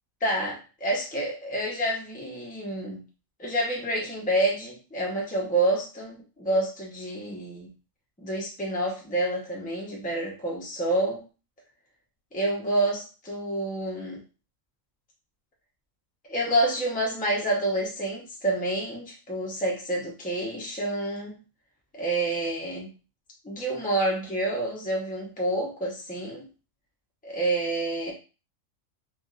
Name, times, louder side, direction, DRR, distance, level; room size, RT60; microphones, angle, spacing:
voice 1, 0.2-3.0 3.4-7.7 8.2-11.2 12.3-14.2 16.3-21.4 21.9-22.9 23.4-26.4 27.2-28.1, right 1 dB, 10° left, -3 dB, 0.6 m, -28 dB
3.4 x 2.4 x 2.4 m, 0.33 s
omnidirectional pair, 1.4 m